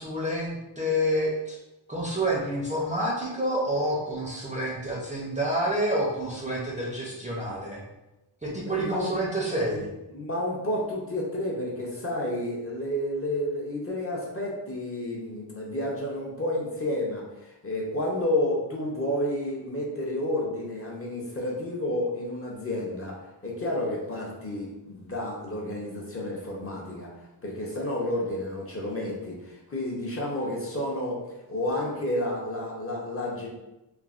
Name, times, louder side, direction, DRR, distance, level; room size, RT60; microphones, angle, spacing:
voice 1, 0.0-1.6 1.9-7.8 8.4-9.9, equal, 15° right, -5 dB, 0.5 m, -28 dB
voice 2, 8.7-9.2 9.7-9.9 10.1-27.1 27.4-31.2 31.5-33.5, left 1 dB, 30° left, -3 dB, 0.6 m, -30 dB
3.1 x 2.0 x 2.4 m, 0.97 s
wide cardioid pair, 110°, 44 cm